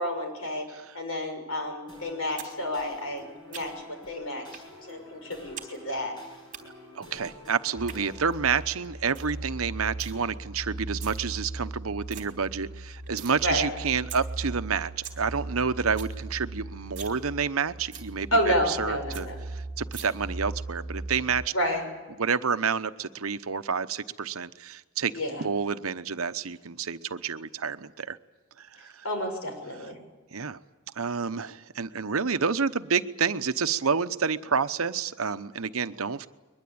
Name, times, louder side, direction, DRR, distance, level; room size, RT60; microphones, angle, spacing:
voice 1, 0.0-0.6 0.9-6.1 13.4-13.7 18.3-19.3 21.5-21.8 25.1-25.4 29.0-30.0, equal, 85° left, 4 dB, 6.3 m, -30 dB
sound 1, 1.9-8.7, left 1 dB, 20° left, 7.0 m, -48 dB
sound 2, 2.4-2.5 2.8-3.9 4.5-4.7 5.0-5.7 6.0-6.6 7.6-8.0 8.5-8.6 8.8-8.9 9.1-9.4 9.6-10.1 10.8-11.2 11.6-11.7 11.9-12.2 12.6-13.4 13.7-13.8 14.1-14.2 14.6-14.7 14.9-15.2 15.5-15.6 15.8-16.1 16.5-16.6 16.9-17.2 17.5-17.6 17.9-18.1 18.5-18.6 18.8-18.9 19.1-19.2 19.9-20.0, right 9 dB, 35° right, 3.4 m, -41 dB
voice 2, 6.9-18.3 18.7-21.5 22.2-25.1 25.4-28.2 28.6-29.0 30.3-30.6 31.0-36.3, right 6 dB, 85° right, 12 dB, 0.9 m, -29 dB
sound 3, 7.7-21.5, right 2 dB, 15° right, 4.2 m, -38 dB
22.0 x 22.0 x 8.7 m, 1.2 s
head